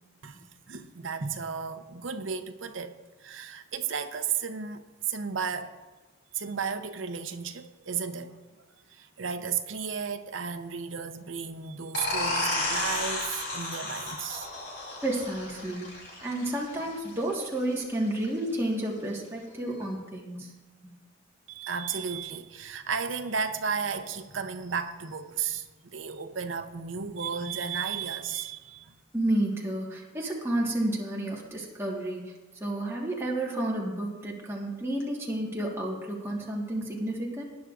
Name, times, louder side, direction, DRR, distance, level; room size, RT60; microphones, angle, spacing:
voice 1, 0.2-5.8 6.3-8.4 8.9-14.5 21.5-29.0, right 6 dB, 75° right, 0.7 m, -34 dB
sound 1, 11.9-17.3, left 2 dB, 60° left, 3.4 m, -33 dB
voice 2, 15.0-20.5 20.8-20.9 29.1-32.2 32.6-37.4, right 1 dB, 15° right, 1.5 m, -31 dB
18.5 x 10.5 x 2.5 m
head